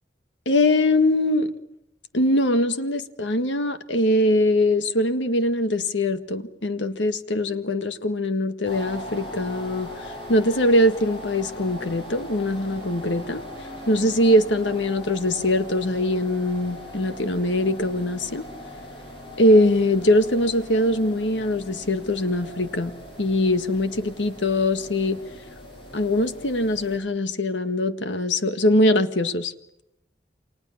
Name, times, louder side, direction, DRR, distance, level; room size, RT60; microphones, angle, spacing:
voice 1, 0.5-1.5 2.1-13.4 13.9-18.4 19.4-22.9 23.2-25.2 25.9-29.5, left 1 dB, 90° left, 1.8 m, -22 dB
sound 1, 8.7-27.0, left 1 dB, 30° left, 7.4 m, -40 dB
29.0 x 26.0 x 7.3 m
head